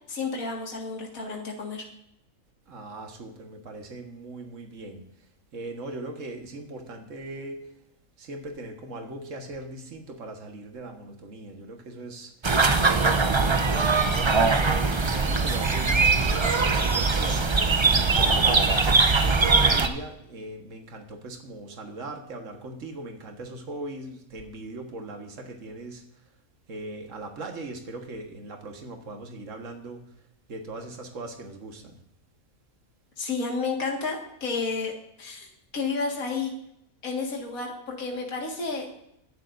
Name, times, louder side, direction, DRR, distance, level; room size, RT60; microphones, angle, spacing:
voice 1, 0.1-1.8 33.2-34.9 35.2-35.5 35.7-36.5 37.0-38.9, left 4 dB, 75° left, 0 dB, 2.3 m, -31 dB
voice 2, 2.7-5.0 5.5-7.7 8.2-26.2 26.7-30.0 30.5-32.0, right 2 dB, 60° right, 3 dB, 1.8 m, -40 dB
sound 1, 12.4-19.9, right 4 dB, 30° right, 0.5 m, -21 dB
21.0 x 11.0 x 2.6 m, 0.79 s
omnidirectional pair, 1.5 m